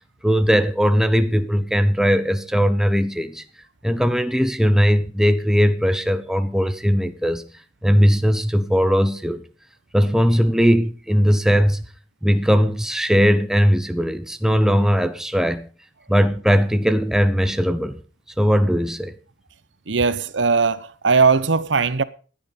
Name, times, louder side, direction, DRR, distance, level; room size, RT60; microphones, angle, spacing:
voice 1, 0.2-3.4 3.8-7.4 7.8-9.4 9.9-11.9 12.2-15.7 16.1-18.0 18.4-19.1, equal, 5° right, 1.0 m, -19 dB
voice 2, 19.9-22.0, right 5 dB, 85° right, 0.9 m, -19 dB
15.5 x 10.5 x 5.2 m
head